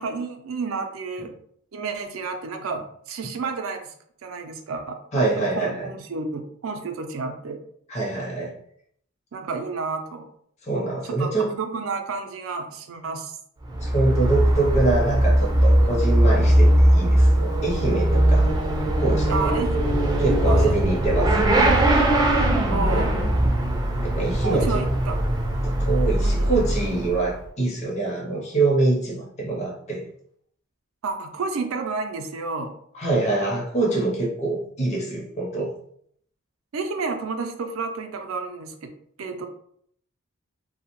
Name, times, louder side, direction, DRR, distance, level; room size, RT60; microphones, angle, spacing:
voice 1, 0.0-1.3 1.7-3.9 4.2-7.6 9.3-10.3 11.2-13.4 19.3-19.9 20.5-20.8 22.7-23.2 24.4-25.2 26.2-26.6 31.0-32.7 36.7-38.9 39.2-39.5, right 4 dB, 80° right, 6 dB, 0.4 m, -30 dB
voice 2, 5.1-5.9 7.9-8.5 10.6-11.5 13.8-18.5 19.0-19.6 20.2-21.5 24.0-24.8 25.6-30.1 32.9-35.7, right 2 dB, 35° left, -3 dB, 0.6 m, -25 dB
Motorcycle / Accelerating revving vroom, 13.6-27.4, right 1 dB, 20° right, 0.4 m, -20 dB
2.7 x 2.1 x 2.9 m, 0.66 s
head